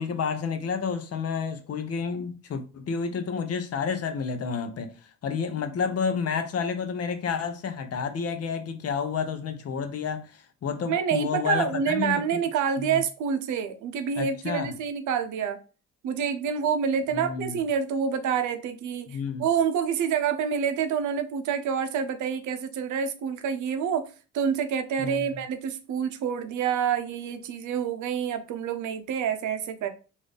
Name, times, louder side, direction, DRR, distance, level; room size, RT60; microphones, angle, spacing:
voice 1, 0.0-4.9 5.2-12.5 12.8-13.0 14.2-14.7 17.1-17.6 19.1-19.5 25.0-25.3, left 6 dB, 55° left, 0.7 m, -30 dB
voice 2, 10.9-15.6 16.0-24.1 24.3-29.9, right 7 dB, 75° right, 0.6 m, -27 dB
3.9 x 2.6 x 3.3 m
cardioid pair, 90°, 30 cm